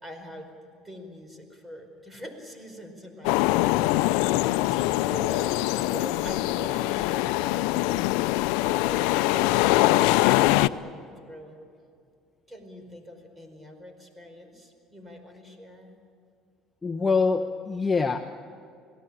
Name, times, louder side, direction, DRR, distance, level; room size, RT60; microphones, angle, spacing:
voice 1, 0.0-0.5 0.8-4.2 4.6-8.1 8.6-11.6 12.5-15.9, equal, 15° right, 6 dB, 5.0 m, -43 dB
sound 1, 3.2-10.7, left 17 dB, 80° left, 0.5 m, -23 dB
voice 2, 16.8-18.2, left 4 dB, 15° left, 3 dB, 1.2 m, -24 dB
27.0 x 18.0 x 8.8 m, 2.4 s
supercardioid pair, 100°, 0 cm